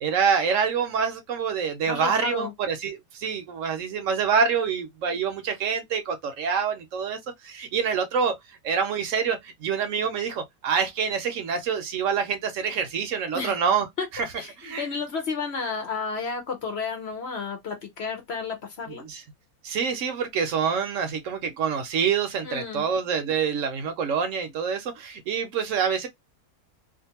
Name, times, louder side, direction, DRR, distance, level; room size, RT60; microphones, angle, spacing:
voice 1, 0.0-13.9 14.1-14.3 14.6-14.9 18.9-19.2 19.6-26.1, right 6 dB, 70° right, 0.9 m, -26 dB
voice 2, 1.9-2.5 13.3-13.6 14.0-14.1 14.4-19.0 22.4-22.9, left 5 dB, 55° left, 0.8 m, -32 dB
2.5 x 2.5 x 2.7 m
omnidirectional pair, 1.5 m